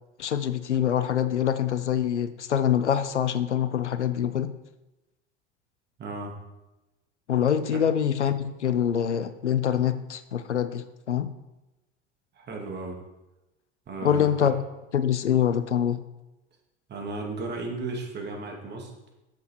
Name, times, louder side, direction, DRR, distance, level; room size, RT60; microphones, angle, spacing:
voice 1, 0.2-4.5 7.3-11.3 14.0-14.6 14.9-16.0, left 9 dB, 75° left, 13 dB, 0.7 m, -25 dB
voice 2, 6.0-6.3 12.4-13.0 13.9-14.5 16.9-18.9, right 3 dB, 30° right, 1 dB, 2.5 m, -35 dB
10.5 x 7.8 x 4.5 m, 1.0 s
figure-of-eight pair, 75°, 35 cm